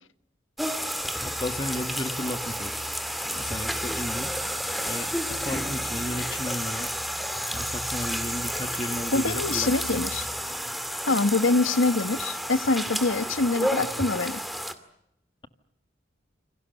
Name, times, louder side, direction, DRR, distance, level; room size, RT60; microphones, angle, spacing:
sound 1, 0.6-14.7, equal, ahead, 2.2 m, -31 dB
voice 1, 1.4-2.8 3.3-4.3 4.8-6.9 7.5-10.1, left 1 dB, 25° left, 10 dB, 1.7 m, -33 dB
voice 2, 9.1-10.3 11.0-14.4, left 3 dB, 85° left, 12 dB, 1.4 m, -24 dB
29.0 x 26.5 x 6.7 m, 0.83 s
head